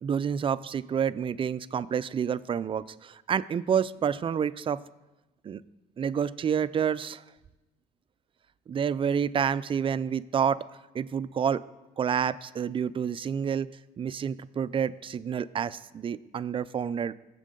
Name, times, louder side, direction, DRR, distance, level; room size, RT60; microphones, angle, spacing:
voice 1, 0.0-4.8 5.4-5.6 6.0-7.2 8.7-10.6 10.9-11.6 12.0-13.7 14.0-17.1, right 7 dB, 30° right, 16 dB, 0.4 m, -28 dB
19.0 x 7.5 x 3.8 m, 1.1 s
cardioid pair, 110°, 17 cm